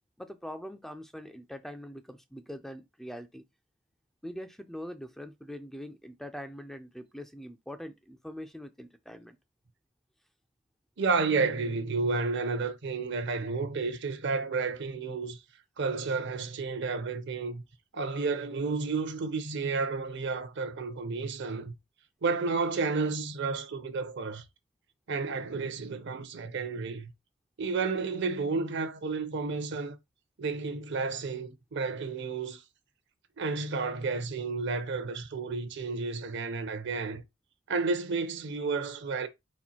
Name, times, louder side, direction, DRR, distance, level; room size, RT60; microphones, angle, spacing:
voice 1, 0.2-3.4 4.2-9.4, equal, ahead, 0.3 m, -43 dB
voice 2, 11.0-15.4 15.8-17.6 17.9-21.7 22.2-24.4 25.1-27.1 27.6-30.0 30.4-32.6 33.4-37.2 37.7-39.3, right 4 dB, 60° right, 0.7 m, -31 dB
4.3 x 2.4 x 4.1 m
head